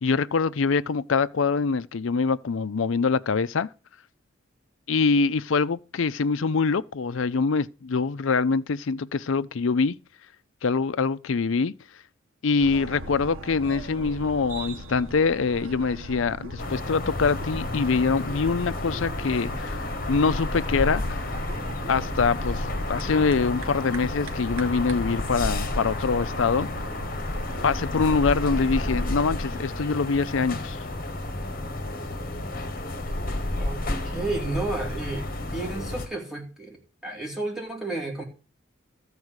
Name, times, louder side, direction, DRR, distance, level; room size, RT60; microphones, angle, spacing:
voice 1, 0.0-3.7 4.9-9.9 10.6-11.7 12.4-21.2 21.9-26.7 27.6-30.8, left 4 dB, 70° left, 0.5 m, -24 dB
sound 1, 12.6-29.1, right 1 dB, 85° right, 1.7 m, -39 dB
sound 2, 16.6-36.1, left 1 dB, 45° left, 1.3 m, -31 dB
voice 2, 33.6-35.3 35.5-38.2, right 2 dB, ahead, 2.6 m, -32 dB
13.5 x 4.8 x 8.0 m
head